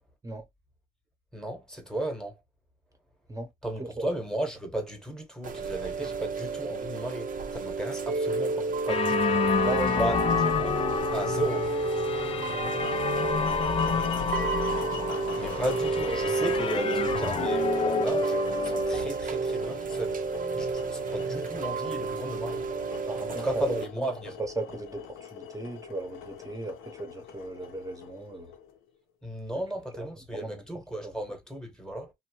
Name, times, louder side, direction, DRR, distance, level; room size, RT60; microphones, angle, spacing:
voice 1, 1.3-2.4 3.6-9.5 9.9-10.2 10.4-10.8 11.1-11.7 15.4-20.2 20.6-22.6 23.3-24.4 29.2-32.1, right 1 dB, 5° left, 1.1 m, -35 dB
Chime / Rain, 5.4-23.8, right 3 dB, 45° right, 0.6 m, -30 dB
sound 1, 8.9-19.0, left 6 dB, 30° left, 0.3 m, -29 dB
voice 2, 9.6-10.2 13.9-15.6 15.9-16.3 23.1-24.1 24.4-28.5 29.5-29.6 29.9-30.6 31.0-31.1, right 2 dB, 15° right, 0.9 m, -37 dB
sound 2, 12.8-28.9, left 8 dB, 90° left, 0.6 m, -43 dB
2.8 x 2.1 x 2.9 m
cardioid pair, 90°, 20 cm